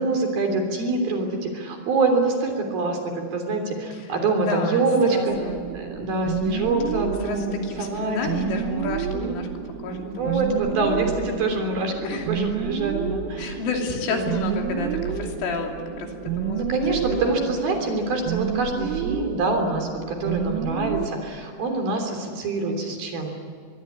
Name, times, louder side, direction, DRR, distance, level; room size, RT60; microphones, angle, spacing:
voice 1, 0.0-5.4 5.7-8.2 9.1-9.4 10.1-13.6 14.1-14.3 14.6-15.0 16.6-23.3, right 3 dB, 50° right, 4 dB, 4.8 m, -25 dB
voice 2, 4.4-5.7 7.2-9.5 9.8-10.9 11.2-11.6 12.0-12.3 13.4-16.7 17.1-17.4, left 3 dB, 75° left, 2 dB, 5.3 m, -31 dB
sound 1, 5.3-21.1, right 8 dB, 80° right, 3.5 m, -30 dB
23.5 x 23.0 x 9.7 m, 2.1 s
omnidirectional pair, 5.8 m